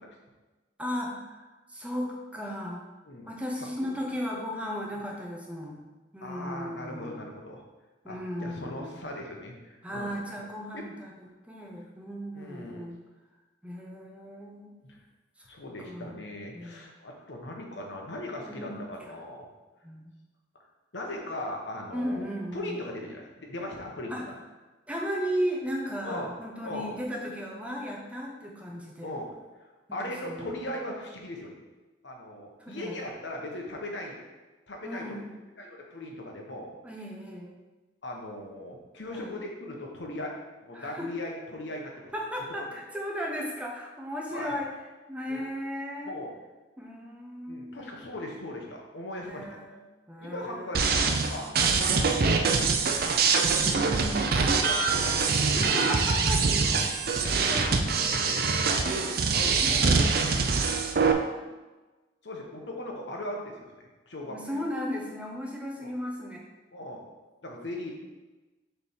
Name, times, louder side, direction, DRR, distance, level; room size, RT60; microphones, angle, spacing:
voice 1, 0.8-2.8 3.3-5.8 6.1-7.2 8.0-9.0 9.8-13.0 13.6-14.8 15.8-16.3 16.5-16.9 18.5-18.8 19.8-20.1 21.9-22.8 24.1-24.3 24.9-29.1 29.9-30.6 32.6-33.0 34.8-35.3 36.8-37.5 39.0-39.4 40.7-41.1 42.1-44.7 45.1-46.2 46.8-47.8 49.2-49.8 50.1-51.0 51.6-51.9 53.6-54.5 55.7-56.5 57.5-57.7 59.6-60.0 64.3-66.4, equal, 5° right, -1 dB, 0.8 m, -36 dB
voice 2, 6.2-7.6 8.1-10.1 10.7-10.9 12.3-12.9 14.8-15.0 15.4-19.5 20.9-22.3 22.5-24.3 26.0-26.3 26.6-27.0 29.0-29.3 29.9-31.5 32.0-34.2 34.7-35.2 35.6-36.8 38.0-40.3 40.6-42.1 44.3-44.5 45.3-45.4 46.0-46.3 47.5-49.5 50.2-52.9 54.0-55.9 57.2-57.7 58.3-58.5 58.8-60.1 62.2-64.6 65.8-65.9 66.7-67.0 67.4-67.9, left 1 dB, 90° left, 0 dB, 1.2 m, -39 dB
sound 1, 50.7-61.1, right 4 dB, 55° right, 0.5 m, -24 dB
6.8 x 3.5 x 4.4 m, 1.2 s
head